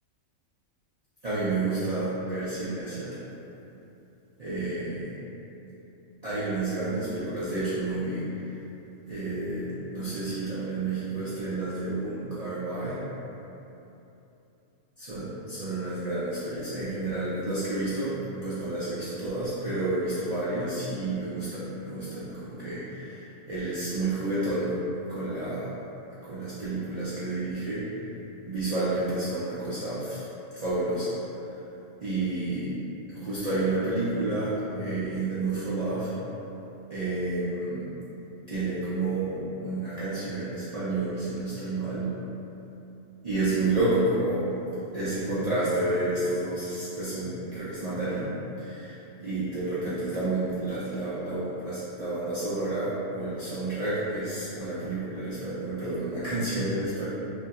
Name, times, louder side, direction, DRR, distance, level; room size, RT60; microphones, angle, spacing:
voice 1, 1.2-3.1 4.4-5.2 6.2-8.3 9.1-13.0 15.1-24.7 25.1-25.7 26.2-27.9 28.5-30.2 30.5-31.2 31.5-31.6 32.0-32.7 33.1-36.1 36.9-37.9 38.5-42.1 43.2-44.5 44.9-57.0, right 2 dB, 75° right, -12 dB, 0.3 m, -30 dB
2.7 x 2.6 x 2.3 m, 2.9 s
omnidirectional pair, 1.4 m